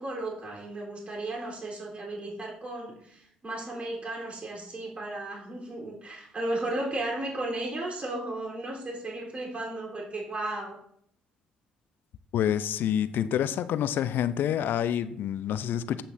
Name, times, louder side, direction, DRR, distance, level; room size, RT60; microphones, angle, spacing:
voice 1, 0.0-10.8, right 2 dB, 35° right, -2 dB, 3.8 m, -35 dB
voice 2, 12.3-16.0, left 10 dB, 60° left, 14 dB, 0.5 m, -27 dB
15.0 x 5.9 x 2.7 m, 0.67 s
hypercardioid pair, 50°, 4 cm